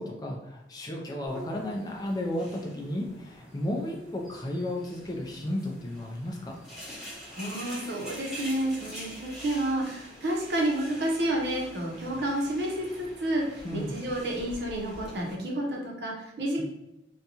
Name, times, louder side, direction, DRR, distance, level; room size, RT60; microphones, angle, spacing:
voice 1, 0.0-6.6 13.6-13.9 16.6-16.7, left 1 dB, 20° left, 0 dB, 0.4 m, -33 dB
sound 1, 1.3-15.3, equal, 5° right, 0.7 m, -45 dB
voice 2, 7.1-16.6, right 1 dB, 75° right, -1 dB, 0.7 m, -30 dB
2.5 x 2.2 x 2.8 m, 0.88 s
head